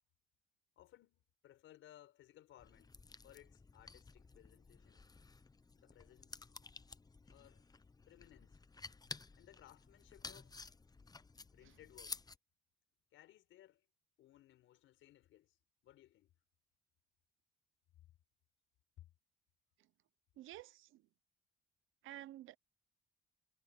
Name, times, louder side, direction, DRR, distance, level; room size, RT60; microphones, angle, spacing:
voice 1, 0.8-2.9 3.2-5.0 5.7-6.5 7.3-7.7 8.1-8.6 9.3-10.6 11.5-12.2 13.1-13.9 14.2-15.6 15.8-16.3 19.0-19.1, left 13 dB, 85° left, 5.5 m, -62 dB
sound 1, 2.6-12.4, left 4 dB, 20° left, 0.7 m, -53 dB
voice 2, 20.4-21.0 22.0-22.6, right 14 dB, 90° right, 0.8 m, -51 dB
cardioid pair, 90°, 20 cm